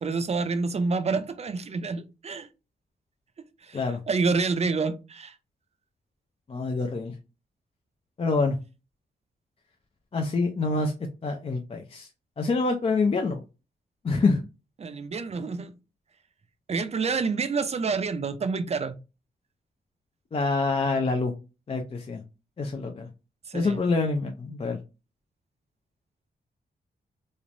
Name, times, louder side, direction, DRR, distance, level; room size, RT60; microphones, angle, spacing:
voice 1, 0.0-2.5 3.7-5.3 14.8-15.7 16.7-18.9 23.5-23.8, right 4 dB, 35° right, 0.4 m, -28 dB
voice 2, 6.5-7.1 8.2-8.6 10.1-10.9 11.2-12.1 12.4-13.4 14.0-14.4 20.3-21.3 21.7-22.2 22.6-23.1 23.5-24.8, left 3 dB, 35° left, 0.4 m, -26 dB
3.1 x 2.0 x 2.5 m
cardioid pair, 65°, 18 cm